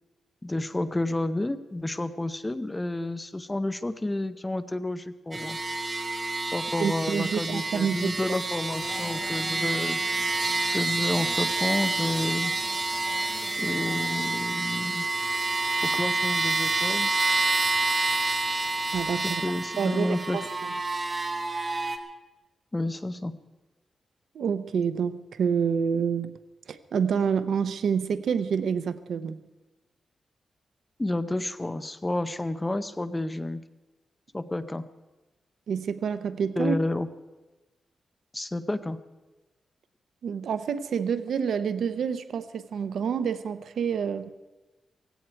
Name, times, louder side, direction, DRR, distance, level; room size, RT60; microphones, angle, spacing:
voice 1, 0.4-5.6 6.5-10.0 10.7-12.5 13.6-15.1 15.8-17.1 19.2-20.4 22.7-23.4 31.0-33.6 34.3-34.9 36.6-37.1 38.3-39.0, left 2 dB, 15° left, 11 dB, 0.7 m, -30 dB
sound 1, 5.3-22.0, right 3 dB, 30° right, 1.3 m, -28 dB
voice 2, 6.8-8.2 18.9-19.4 19.8-20.4 24.3-26.3 26.7-29.4 35.7-36.8 40.2-44.3, right 7 dB, 80° right, 12 dB, 0.8 m, -28 dB
sound 2, 8.7-19.7, left 4 dB, 85° left, 6.1 m, -46 dB
17.5 x 16.0 x 4.6 m, 1.2 s
wide cardioid pair, 145°, 0 cm